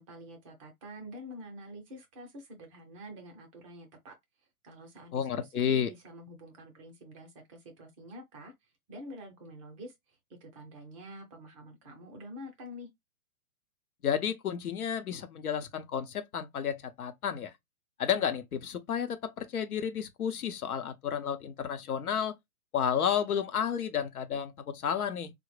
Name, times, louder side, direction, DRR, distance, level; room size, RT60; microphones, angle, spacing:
voice 1, 0.0-4.1 4.6-8.5 8.9-9.9 10.3-12.9, equal, 25° right, 0.5 m, -47 dB
voice 2, 5.1-5.9 14.0-17.5 18.0-22.3 22.7-25.3, left 8 dB, 75° left, 0.8 m, -31 dB
3.7 x 2.1 x 3.1 m
hypercardioid pair, 130°, 44 cm